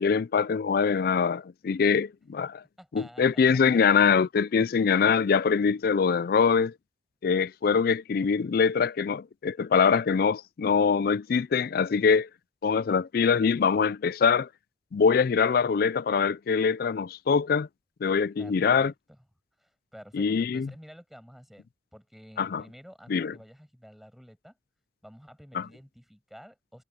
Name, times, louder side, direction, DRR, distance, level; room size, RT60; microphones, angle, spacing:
voice 1, 0.0-2.6 2.9-6.7 7.2-12.3 12.6-14.5 14.9-17.7 18.0-18.9 20.1-20.7 22.4-22.6 23.1-23.3 25.5-25.7, left 6 dB, 50° left, 0.3 m, -23 dB
voice 2, 2.8-3.6 5.0-5.3 5.7-5.8 18.4-19.2 19.6-24.6 25.0-26.8, equal, ahead, 6.7 m, -51 dB
head